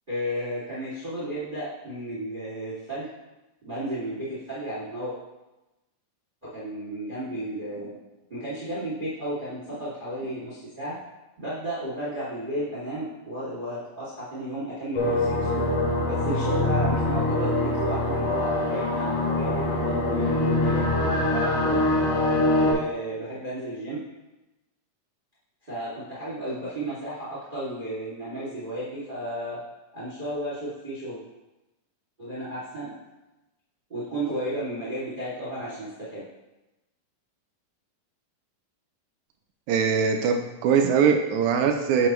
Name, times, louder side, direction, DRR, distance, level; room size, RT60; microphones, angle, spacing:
voice 1, 0.1-3.1 3.6-5.1 6.5-7.9 8.3-10.9 11.4-15.6 16.0-21.8 22.6-24.0 25.6-29.6 29.9-31.2 32.2-32.9 33.9-36.2, right 1 dB, 15° right, -9 dB, 2.0 m, -33 dB
sound 1, 14.9-22.7, left 2 dB, 60° left, 1.9 m, -24 dB
voice 2, 39.7-42.1, right 6 dB, 85° right, 5 dB, 1.7 m, -22 dB
8.7 x 6.7 x 3.1 m, 1.0 s
omnidirectional pair, 4.0 m